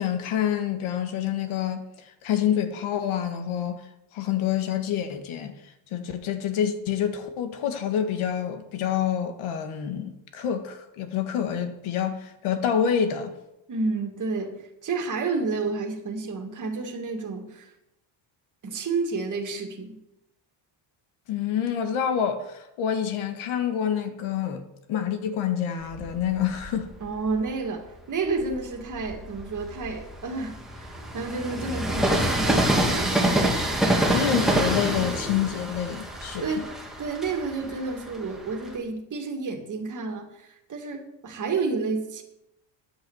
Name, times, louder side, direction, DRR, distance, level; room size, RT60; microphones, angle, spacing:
voice 1, 0.0-3.8 4.1-5.6 5.9-13.3 21.3-26.9 34.1-36.7, left 9 dB, 75° left, 1.9 m, -27 dB
voice 2, 13.7-17.7 18.6-20.0 27.0-33.3 36.4-42.2, right 4 dB, 35° right, 2.2 m, -30 dB
Train, 25.9-27.5 28.1-38.7, right 1 dB, ahead, 1.9 m, -27 dB
10.0 x 8.5 x 8.0 m
cardioid pair, 145°, 50 cm